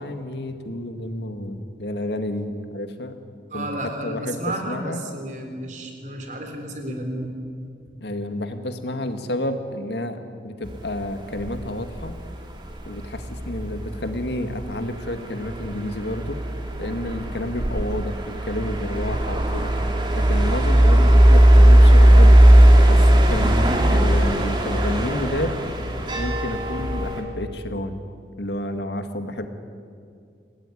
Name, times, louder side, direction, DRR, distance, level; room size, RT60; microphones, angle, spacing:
voice 1, 0.0-3.2 3.5-3.7 4.0-4.4 4.7-5.0 8.0-12.1 12.8-16.4 16.8-19.7 20.1-22.4 22.9-25.5 26.2-28.0 28.4-29.5, left 1 dB, 70° left, 7 dB, 2.0 m, -30 dB
voice 2, 3.5-7.4 7.9-8.0, right 1 dB, 45° right, 4 dB, 3.9 m, -32 dB
sound 1, 10.6-27.2, right 1 dB, 25° right, 3.0 m, -17 dB
26.0 x 18.5 x 9.9 m, 2.3 s
head